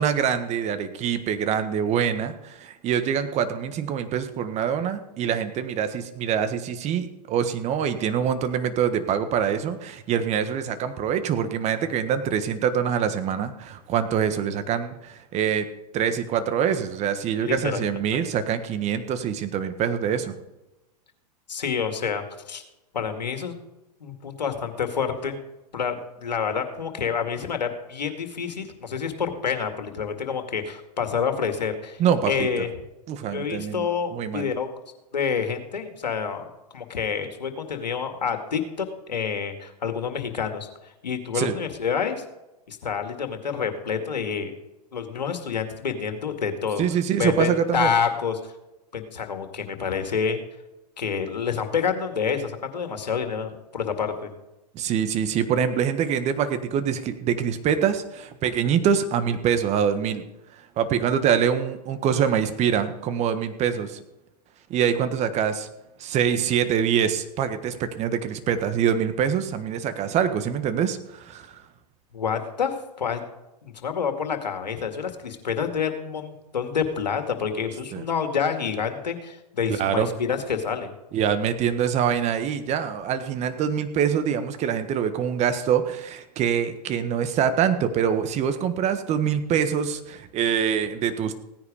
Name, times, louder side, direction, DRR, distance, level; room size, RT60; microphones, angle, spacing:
voice 1, 0.0-15.7 15.9-20.3 32.0-32.6 33.1-34.5 41.3-41.5 46.8-47.9 54.7-60.2 60.8-64.0 64.7-65.7 66.0-71.6 77.9-78.0 79.7-80.1 81.1-91.3, right 8 dB, 30° right, 10 dB, 1.5 m, -25 dB
voice 2, 17.4-17.8 18.1-18.2 21.5-22.6 22.9-23.6 24.0-25.4 25.7-32.0 32.3-32.7 33.3-34.7 35.1-36.5 36.7-40.7 41.0-42.2 42.7-44.6 44.9-46.8 47.2-48.4 48.9-50.4 51.0-54.3 72.1-72.7 73.0-73.2 73.6-80.9, left 6 dB, 85° left, 7 dB, 2.1 m, -28 dB
16.5 x 9.8 x 5.0 m, 0.97 s
hypercardioid pair, 110°, 21 cm